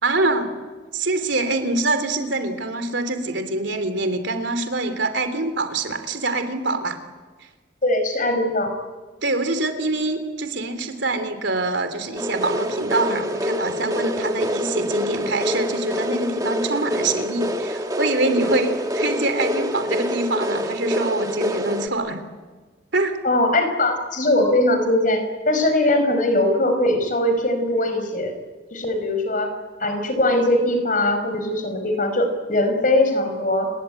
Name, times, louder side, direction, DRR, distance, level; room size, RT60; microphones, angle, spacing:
voice 1, 0.0-0.5 0.9-7.0 9.2-22.2 22.9-23.2, right 2 dB, 70° right, 8 dB, 3.3 m, -25 dB
voice 2, 7.8-8.7 23.2-28.3 28.7-29.5 29.8-33.7, left 1 dB, 45° left, 7 dB, 5.3 m, -21 dB
sound 1, 12.2-21.9, equal, 20° right, 1.5 m, -26 dB
30.0 x 21.5 x 9.0 m, 1.4 s
head